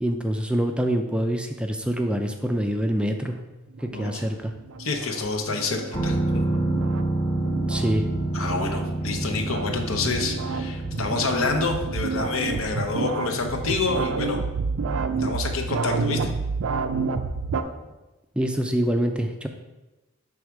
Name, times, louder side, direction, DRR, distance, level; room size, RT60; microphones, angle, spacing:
voice 1, 0.0-3.4 3.8-4.5 7.7-8.1 18.4-19.5, equal, 5° right, 5 dB, 0.3 m, -25 dB
sound 1, 3.7-17.6, right 4 dB, 70° right, 0.4 m, -30 dB
voice 2, 3.9-4.2 4.8-6.2 8.3-14.4 15.2-16.3, left 3 dB, 70° left, 3 dB, 0.8 m, -27 dB
sound 2, 5.9-17.5 17.8-17.9, right 2 dB, 20° left, 0.9 m, -30 dB
6.5 x 3.5 x 4.7 m, 1.1 s
head